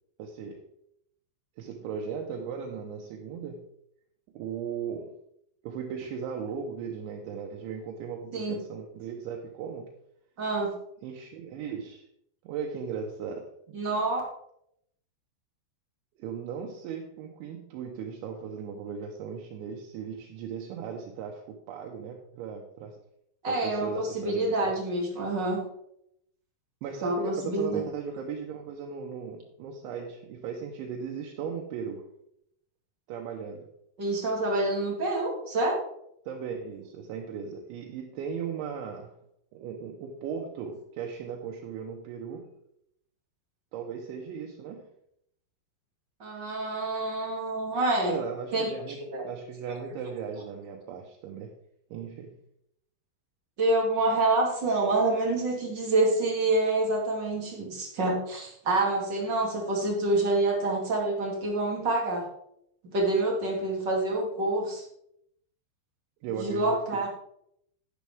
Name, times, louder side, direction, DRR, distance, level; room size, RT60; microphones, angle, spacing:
voice 1, 0.2-0.6 1.6-3.7 4.3-5.1 5.6-9.9 11.0-12.0 12.4-13.8 16.2-23.0 23.5-24.7 26.8-32.1 33.1-33.7 36.3-39.1 39.5-42.5 43.7-44.9 48.1-51.5 51.9-52.4 66.2-67.1, right 6 dB, 80° right, 1 dB, 3.3 m, -37 dB
voice 2, 10.4-10.7 13.7-14.2 23.4-25.6 27.0-27.8 34.0-35.8 46.2-48.2 48.5-48.7 49.1-49.2 53.6-62.3 62.8-64.9 66.3-67.1, right 2 dB, 35° right, -2 dB, 1.9 m, -27 dB
11.0 x 10.5 x 3.5 m, 0.74 s
omnidirectional pair, 5.4 m